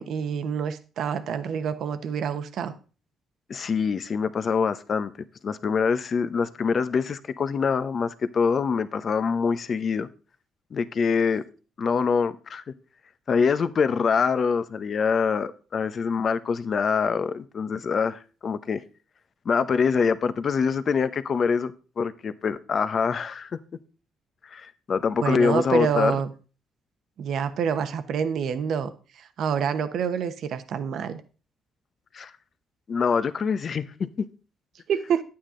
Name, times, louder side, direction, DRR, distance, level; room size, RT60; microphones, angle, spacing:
voice 1, 0.0-2.7 25.2-26.3 27.2-28.9 29.4-31.2 34.9-35.2, right 7 dB, 70° right, 1.1 m, -27 dB
voice 2, 3.5-5.1 5.4-10.1 10.7-11.4 11.8-12.6 13.3-18.8 19.4-23.6 24.5-26.1 32.1-32.3 32.9-34.3, left 5 dB, 50° left, 0.8 m, -25 dB
9.9 x 8.8 x 3.8 m
cardioid pair, 90°, 0 cm